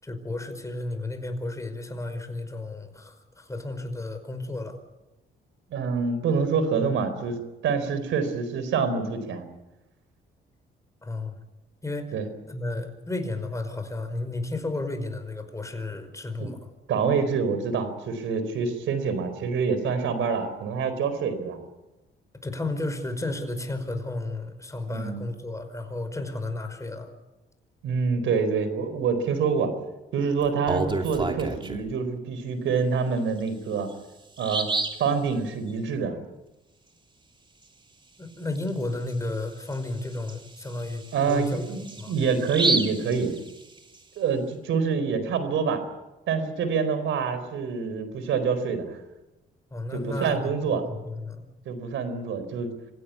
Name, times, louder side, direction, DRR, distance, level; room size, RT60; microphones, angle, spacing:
voice 1, 0.0-4.8 11.0-11.4 11.8-12.1 12.5-16.7 22.4-27.1 38.2-41.7 42.0-42.1 49.7-51.5, left 2 dB, 15° left, 7 dB, 5.1 m, -33 dB
voice 2, 5.7-9.4 12.1-12.3 16.4-16.5 16.9-21.6 24.9-25.3 27.8-29.7 30.1-33.9 34.4-34.7 35.0-36.2 41.1-43.3 44.2-45.8 46.3-49.0 49.9-50.8 51.7-52.7, right 5 dB, 80° right, 11 dB, 4.5 m, -26 dB
Bird vocalization bird call bird song, 30.4-31.9 33.4-33.5 33.9-34.0 34.4-35.1 38.6-38.7 39.1-39.2 39.7-44.0, right 3 dB, 25° right, 3.0 m, -30 dB
26.5 x 17.0 x 8.6 m, 1.0 s
cardioid pair, 90°, 20 cm